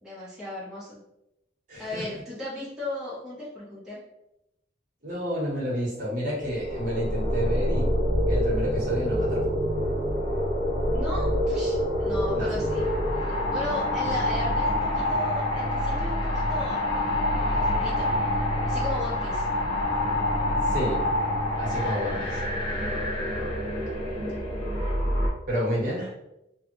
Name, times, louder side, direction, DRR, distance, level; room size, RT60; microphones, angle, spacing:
voice 1, 0.0-1.0 1.8-4.0 10.9-12.8 13.1-16.8 17.4-18.3 18.7-19.4, left 1 dB, 5° right, -9 dB, 0.6 m, -36 dB
voice 2, 1.7-2.1 5.0-7.9 8.3-9.6 12.3-12.5 20.7-21.1 21.6-22.4 25.5-26.1, equal, 45° right, -5 dB, 0.9 m, -30 dB
sound 1, 6.4-25.3, left 1 dB, 25° left, 1.1 m, -26 dB
2.6 x 2.2 x 2.8 m, 0.85 s
head